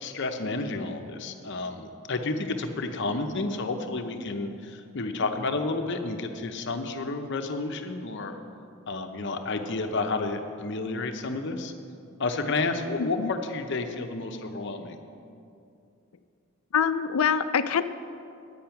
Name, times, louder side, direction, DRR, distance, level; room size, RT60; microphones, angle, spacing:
voice 1, 0.0-8.4 8.9-11.7 12.2-15.0, left 3 dB, 55° left, 6 dB, 0.8 m, -31 dB
voice 2, 13.0-13.3 16.7-17.8, left 7 dB, 85° left, 12 dB, 0.5 m, -25 dB
10.5 x 8.6 x 5.8 m, 2.5 s
head